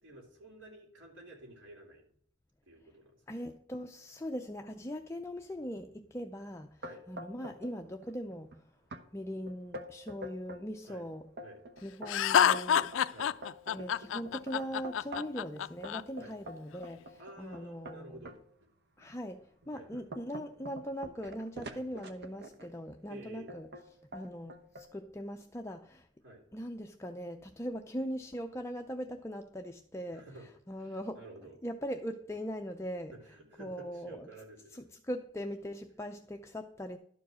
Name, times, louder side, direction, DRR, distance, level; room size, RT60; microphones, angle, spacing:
voice 1, 0.0-2.0 2.7-3.2 6.8-7.0 10.9-11.0 11.4-11.6 13.1-13.3 16.2-16.3 17.2-18.4 19.7-20.0 21.7-21.8 23.0-23.5 26.2-26.4 30.1-30.5 30.8-31.6 33.1-34.8, right 2 dB, 70° right, 3.1 m, -51 dB
voice 2, 3.3-8.7 9.1-11.3 11.8-12.9 13.7-18.3 19.0-23.7 24.1-26.1 26.5-30.3 30.7-31.2 31.6-33.1 33.6-34.3 34.7-37.0, equal, 15° left, 0.4 m, -40 dB
sound 1, 6.8-7.7 8.0-8.5 8.9-9.0 9.5-10.6 11.1-15.4 15.8-18.4 19.0-19.1 19.6-22.7 23.5-23.8 24.1-24.9, equal, 55° right, 0.9 m, -45 dB
Laughter, 12.1-16.0, left 8 dB, 75° left, 0.4 m, -27 dB
12.0 x 4.8 x 6.2 m
head